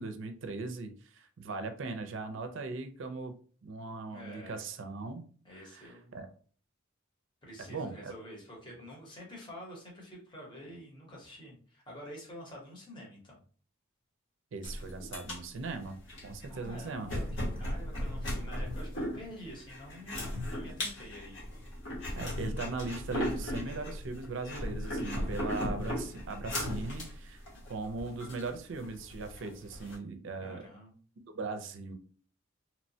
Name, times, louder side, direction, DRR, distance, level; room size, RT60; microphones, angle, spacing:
voice 1, 0.0-5.2 5.7-5.9 6.1-6.3 7.6-8.1 14.5-16.0 16.2-17.2 22.1-27.4 27.7-30.6 31.3-31.9, right 3 dB, 60° right, 7 dB, 0.4 m, -39 dB
voice 2, 4.1-4.6 5.4-6.1 7.4-13.4 16.5-21.5 27.5-27.6 28.0-28.2 30.4-30.9, equal, 20° left, -3 dB, 0.8 m, -48 dB
sound 1, 14.6-30.0, left 1 dB, 55° left, 1.0 m, -37 dB
2.9 x 2.1 x 2.7 m, 0.43 s
head